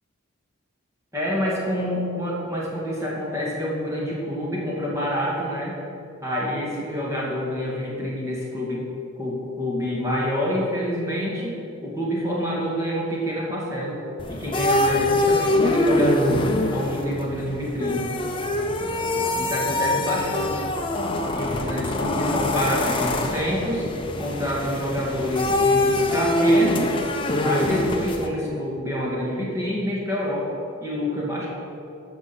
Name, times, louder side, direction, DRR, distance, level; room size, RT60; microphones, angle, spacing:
voice 1, 1.1-5.8 6.2-8.8 9.2-14.0 14.3-16.4 16.7-18.1 19.4-20.6 21.3-23.8 24.2-26.8 27.4-30.5 30.8-31.5, equal, 15° right, -5 dB, 2.2 m, -27 dB
sound 1, 14.2-28.3, left 1 dB, 25° left, 0.7 m, -24 dB
13.0 x 5.3 x 7.1 m, 2.8 s
head